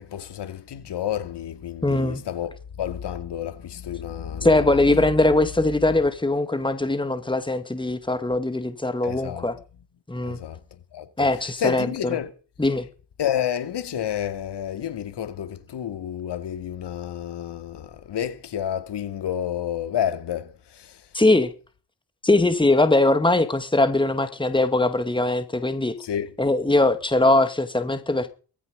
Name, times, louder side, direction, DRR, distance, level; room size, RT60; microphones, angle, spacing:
voice 1, 0.0-2.5 2.8-5.1 9.0-9.5 10.2-10.6 10.9-12.3 13.2-21.0 26.0-26.3, left 10 dB, 65° left, 2.5 m, -30 dB
voice 2, 1.8-2.2 4.4-9.5 10.1-10.4 11.2-11.9 12.6-12.9 21.1-21.5 22.2-25.9 26.4-28.3, left 2 dB, 10° left, 2.2 m, -21 dB
19.0 x 14.5 x 5.3 m
supercardioid pair, 50°, 44 cm